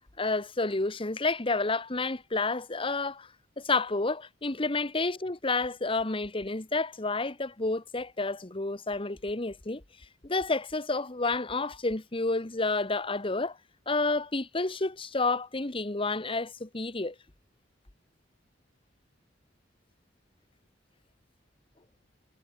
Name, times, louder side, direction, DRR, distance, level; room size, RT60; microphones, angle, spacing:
voice 1, 0.2-3.3 3.6-9.8 10.2-13.6 13.9-17.1, left 3 dB, 30° left, 1.3 m, -30 dB
head